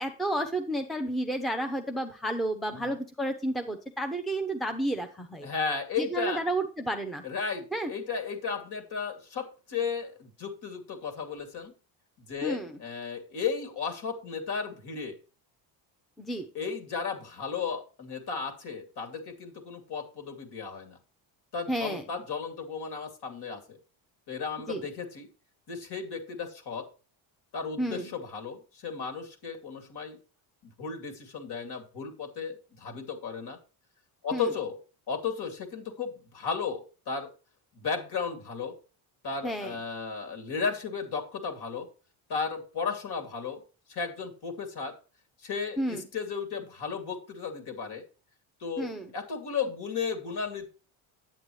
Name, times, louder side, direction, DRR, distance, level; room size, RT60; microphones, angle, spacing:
voice 1, 0.0-5.5 6.0-7.2 7.7-7.9 12.4-12.7 16.2-16.5 21.7-22.0 24.7-24.8 27.8-28.1 34.3-34.5 39.4-39.7 45.8-46.0 48.8-49.1, right 1 dB, ahead, 5 dB, 0.8 m, -31 dB
voice 2, 5.4-6.4 7.2-11.7 12.2-15.2 16.5-21.0 21.5-23.8 24.3-25.3 25.7-26.9 27.5-30.2 30.6-33.6 34.2-34.8 35.1-37.3 37.8-38.8 39.2-41.9 42.3-43.6 43.9-45.0 45.4-48.0 48.6-50.7, left 5 dB, 50° left, 5 dB, 2.8 m, -34 dB
9.2 x 7.9 x 3.2 m, 0.34 s
cardioid pair, 105°, 50 cm